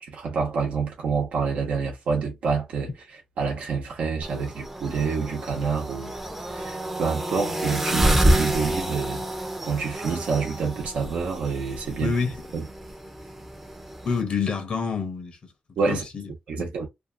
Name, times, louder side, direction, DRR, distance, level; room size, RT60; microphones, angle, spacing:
voice 1, 0.0-6.1 6.5-12.1 12.5-12.6 15.8-16.0 16.5-16.9, right 5 dB, 80° right, 1.0 m, -27 dB
sound 1, 4.2-14.2, right 1 dB, 10° right, 0.6 m, -28 dB
voice 2, 12.0-12.5 14.0-15.4 15.9-16.3 16.6-16.7, left 5 dB, 55° left, 0.7 m, -27 dB
2.6 x 2.4 x 2.4 m
cardioid pair, 100°, 2 cm